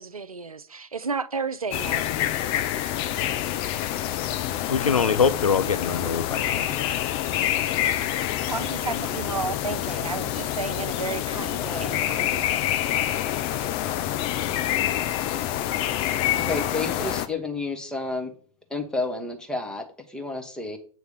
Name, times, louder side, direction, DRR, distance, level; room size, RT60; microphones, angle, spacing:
voice 1, 0.0-2.0 8.5-12.5, right 4 dB, 90° right, 0.5 m, -32 dB
sound 1, 1.7-17.3, left 12 dB, 30° left, 0.6 m, -27 dB
voice 2, 4.7-6.8, left 6 dB, 85° left, 0.5 m, -23 dB
voice 3, 16.4-18.3 18.7-20.8, left 3 dB, 5° left, 1.2 m, -30 dB
8.1 x 3.3 x 6.5 m
figure-of-eight pair, 110°, 18 cm